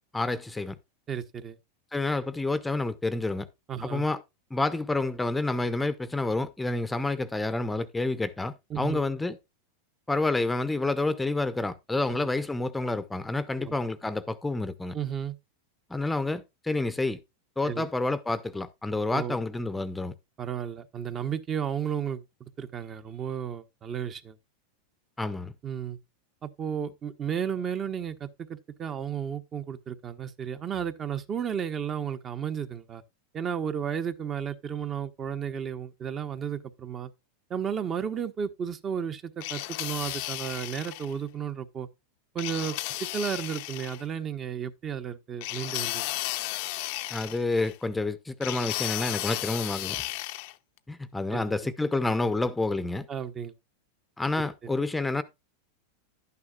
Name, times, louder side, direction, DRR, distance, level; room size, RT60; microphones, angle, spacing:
voice 1, 0.1-0.8 1.9-3.5 3.8-4.2 4.5-9.4 10.1-14.9 15.9-17.2 17.6-20.1 25.2-25.5 47.1-50.0 50.9-53.1 54.2-55.2, left 2 dB, 10° left, 0.8 m, -29 dB
voice 2, 1.1-1.6 3.7-4.1 8.7-9.0 12.1-12.2 13.6-13.7 14.9-15.4 17.6-17.9 19.1-19.4 20.4-24.4 25.6-26.0 26.4-33.0 33.3-37.1 37.5-41.9 42.3-46.1 51.3-51.4 53.1-53.5, right 8 dB, 30° right, 1.0 m, -33 dB
sound 1, 39.4-41.1 42.4-44.0 45.4-47.8 48.4-50.5, left 19 dB, 60° left, 0.7 m, -34 dB
11.0 x 9.5 x 2.4 m
hypercardioid pair, 120°, 0 cm